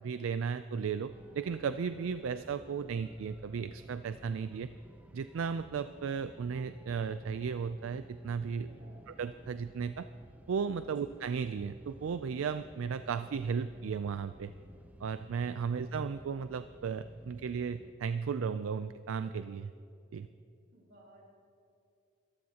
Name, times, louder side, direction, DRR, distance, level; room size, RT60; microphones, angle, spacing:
voice 1, 0.0-4.7 5.1-8.7 9.1-10.1 10.5-14.5 15.0-19.7 20.1-20.3, right 6 dB, 80° right, 11 dB, 0.4 m, -35 dB
sound 1, 1.1-17.9, equal, 10° right, 0.5 m, -56 dB
voice 2, 8.7-9.0 10.9-11.1 20.7-21.2, right 2 dB, 60° right, -2 dB, 4.0 m, -58 dB
22.5 x 14.0 x 2.9 m, 2.7 s
head